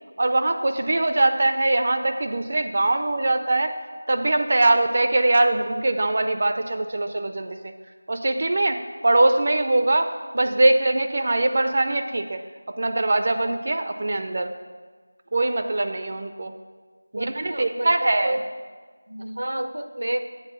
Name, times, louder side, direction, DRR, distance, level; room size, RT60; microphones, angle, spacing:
voice 1, 0.2-3.7 4.1-7.7 8.1-12.4 12.8-14.5 15.3-16.5 17.1-18.4, right 2 dB, 35° right, 7 dB, 0.4 m, -22 dB
voice 2, 17.1-18.5 19.1-20.2, right 1 dB, 85° right, 8 dB, 0.7 m, -30 dB
8.0 x 3.9 x 6.7 m, 1.4 s
figure-of-eight pair, 175°, 0 cm